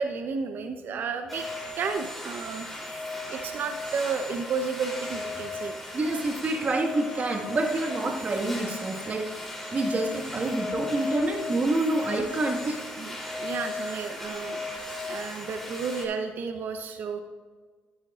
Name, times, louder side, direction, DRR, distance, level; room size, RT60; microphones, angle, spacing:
voice 1, 0.0-1.5 1.7-2.7 3.3-5.8 13.0-14.6 15.1-17.2, right 5 dB, 60° right, 6 dB, 0.8 m, -32 dB
sound 1, 1.3-16.0, left 2 dB, 5° left, 3.2 m, -36 dB
voice 2, 5.9-9.2 9.7-12.8, right 2 dB, 40° right, 2 dB, 1.6 m, -27 dB
12.0 x 11.0 x 2.5 m, 1.5 s
supercardioid pair, 75°, 4 cm